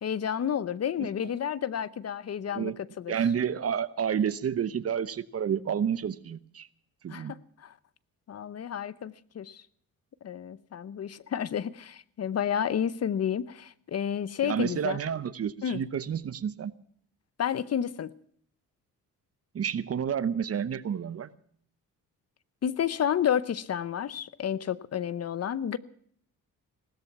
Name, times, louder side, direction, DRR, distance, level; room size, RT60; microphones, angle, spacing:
voice 1, 0.0-3.2 7.1-7.8 8.3-9.6 10.2-15.0 15.6-15.8 17.4-18.1 22.6-25.8, left 9 dB, 45° left, 18 dB, 0.8 m, -31 dB
voice 2, 3.1-6.7 7.0-7.3 14.4-16.7 19.5-21.3, right 8 dB, 45° right, 16 dB, 0.9 m, -30 dB
18.5 x 13.5 x 5.9 m, 0.62 s
cardioid pair, 90°, 34 cm